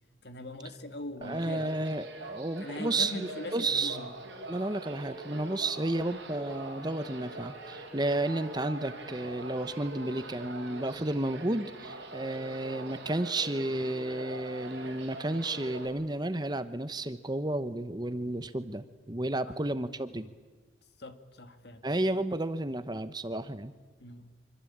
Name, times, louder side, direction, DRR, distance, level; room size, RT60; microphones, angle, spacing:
voice 1, 0.2-1.7 2.6-4.1 19.5-19.6 21.0-21.9 24.0-24.3, left 1 dB, 55° left, 8 dB, 2.1 m, -41 dB
voice 2, 1.2-4.0 4.5-20.3 21.8-23.7, right 2 dB, 20° right, 12 dB, 0.9 m, -32 dB
sound 1, 1.2-15.9, right 2 dB, 65° right, 6.1 m, -43 dB
25.5 x 24.0 x 8.7 m, 1.4 s
head